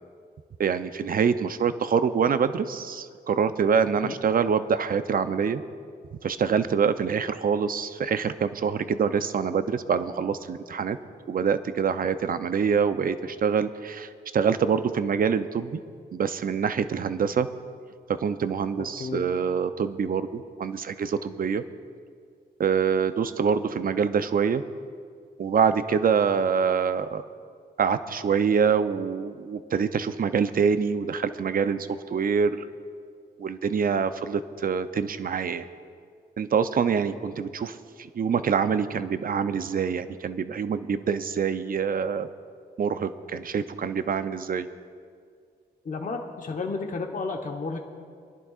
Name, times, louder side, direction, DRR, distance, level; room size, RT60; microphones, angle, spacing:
voice 1, 0.6-5.6 6.2-11.0 11.3-15.8 16.1-17.5 18.2-21.6 22.6-24.6 25.4-27.2 27.8-32.5 33.4-35.7 36.4-37.8 38.1-42.3 42.8-44.7, right 6 dB, 55° right, 11 dB, 0.6 m, -25 dB
voice 2, 19.0-19.3 45.8-47.8, left 4 dB, 50° left, 2 dB, 1.1 m, -32 dB
26.5 x 11.0 x 2.5 m, 2.1 s
cardioid pair, 65°, 17 cm